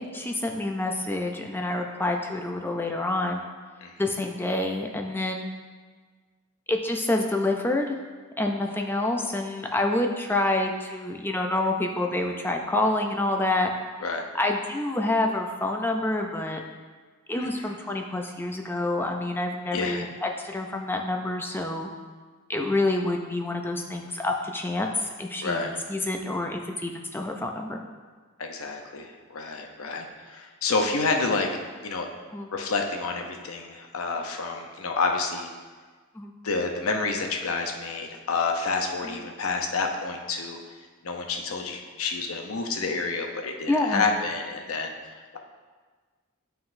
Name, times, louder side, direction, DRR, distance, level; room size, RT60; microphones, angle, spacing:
voice 1, 0.0-3.4 4.0-5.5 6.7-8.0 8.4-13.7 14.3-16.6 17.3-21.9 22.5-27.8 32.3-32.5 36.2-36.3 39.0-39.2 43.7-44.1, left 2 dB, 10° left, 2 dB, 0.4 m, -27 dB
voice 2, 19.7-20.1 25.4-25.8 28.4-31.5 31.8-32.1 32.5-35.5 36.4-40.6 41.0-45.4, left 4 dB, 75° left, 3 dB, 0.7 m, -29 dB
11.0 x 3.9 x 2.6 m, 1.5 s
head